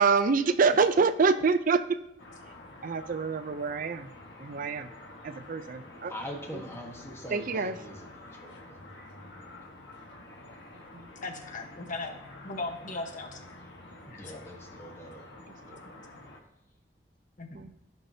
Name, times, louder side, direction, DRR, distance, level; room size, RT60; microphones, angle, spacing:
voice 1, 0.0-2.0 2.8-4.1 4.4-4.9 5.2-6.1 7.3-7.8 10.9-11.1 17.5-17.7, right 5 dB, 50° right, 12 dB, 0.4 m, -26 dB
sound 1, 2.2-16.4, left 2 dB, 90° left, 1.4 m, -49 dB
voice 2, 6.1-8.8 14.0-15.3 15.6-15.8, equal, 15° left, 1 dB, 1.3 m, -42 dB
voice 3, 11.2-12.1 12.4-13.4 14.1-14.4 17.4-17.7, left 3 dB, 45° left, 3 dB, 1.1 m, -37 dB
14.5 x 5.8 x 2.7 m, 0.83 s
head